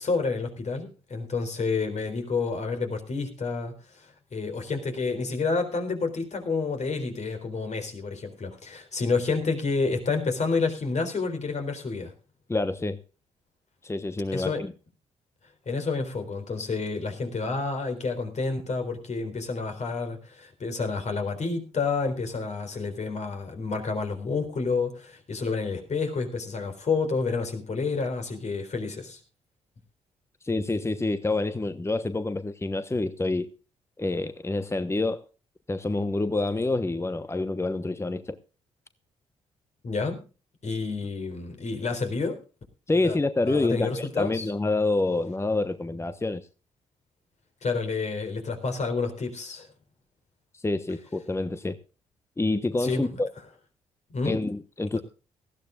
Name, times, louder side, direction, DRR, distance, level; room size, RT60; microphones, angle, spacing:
voice 1, 0.0-12.1 14.3-14.6 15.7-29.2 39.8-40.2 40.6-42.4 43.0-43.2 43.5-44.5 47.6-49.7 52.8-53.2 54.1-54.4 54.9-55.0, left 4 dB, 50° left, 4.1 m, -29 dB
voice 2, 12.5-13.0 13.8-14.7 30.4-33.5 34.0-35.3 35.7-38.4 42.9-46.5 50.5-51.8 52.4-53.3 54.2-55.0, left 2 dB, 15° left, 1.1 m, -27 dB
18.5 x 14.5 x 2.5 m
hypercardioid pair, 45°, 15 cm